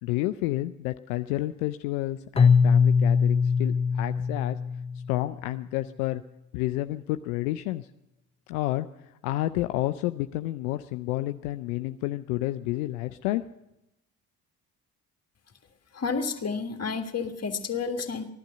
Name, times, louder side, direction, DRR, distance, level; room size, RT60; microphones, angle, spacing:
voice 1, 0.0-4.6 5.1-6.2 6.5-7.9 8.5-8.9 9.2-13.4, left 16 dB, 75° left, 9 dB, 0.5 m, -30 dB
Keyboard (musical), 2.4-5.3, left 6 dB, 15° left, 0.6 m, -22 dB
voice 2, 15.9-18.3, left 5 dB, 35° left, 6 dB, 1.7 m, -30 dB
15.5 x 11.5 x 6.8 m, 0.89 s
hypercardioid pair, 45°, 44 cm